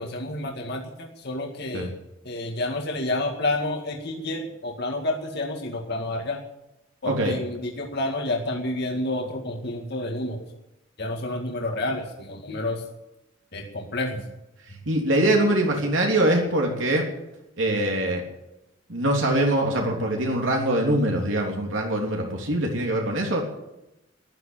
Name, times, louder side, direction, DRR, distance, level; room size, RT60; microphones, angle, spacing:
voice 1, 0.0-1.9 2.2-6.4 7.0-10.4 11.0-12.8 13.5-14.2, left 2 dB, 55° left, 1 dB, 2.2 m, -29 dB
voice 2, 7.0-7.4 14.7-17.1 17.6-18.2 18.9-23.4, right 1 dB, 75° right, 0 dB, 3.3 m, -23 dB
14.0 x 11.5 x 8.5 m, 0.92 s
head